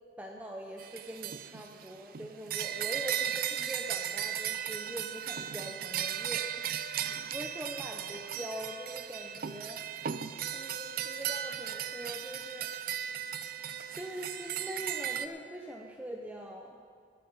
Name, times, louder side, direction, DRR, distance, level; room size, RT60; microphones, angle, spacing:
voice 1, 0.2-9.8 10.5-12.7 13.9-16.8, equal, 10° right, 0 dB, 0.6 m, -43 dB
sound 1, 0.8-15.3, right 10 dB, 50° right, 0.4 m, -36 dB
18.0 x 7.7 x 5.4 m, 2.1 s
head